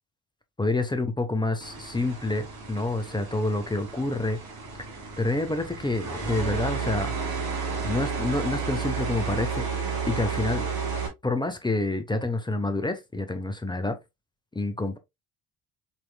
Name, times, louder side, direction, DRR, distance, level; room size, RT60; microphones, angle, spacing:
voice 1, 0.6-4.4 5.2-7.1 7.8-9.7 10.1-10.7 11.2-14.0 14.5-15.0, left 2 dB, 10° left, 0.8 m, -28 dB
sound 1, 1.6-11.1, right 5 dB, 45° right, 2.1 m, -32 dB
4.5 x 4.3 x 2.2 m
figure-of-eight pair, 50°, 48 cm